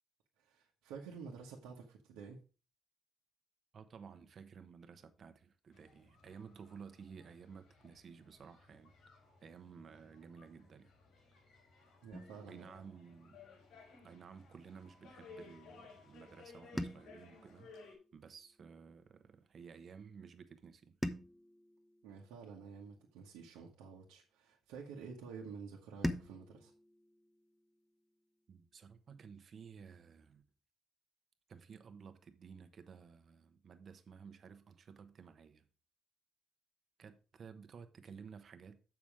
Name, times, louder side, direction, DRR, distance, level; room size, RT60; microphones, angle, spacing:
voice 1, 0.4-2.4 12.0-12.8 22.0-26.7, right 5 dB, 85° right, 1.3 m, -50 dB
voice 2, 3.7-8.9 9.4-10.9 12.5-13.4 14.0-17.7 18.1-21.0 28.5-30.4 31.5-35.6 37.0-38.8, right 6 dB, 55° right, 1.1 m, -54 dB
sound 1, 5.7-17.9, left 4 dB, 80° left, 3.9 m, -59 dB
sound 2, 12.1-14.3 16.8-19.1 21.0-23.5 26.0-28.6, equal, 5° left, 1.0 m, -46 dB
7.2 x 6.0 x 4.9 m
supercardioid pair, 60°, 0 cm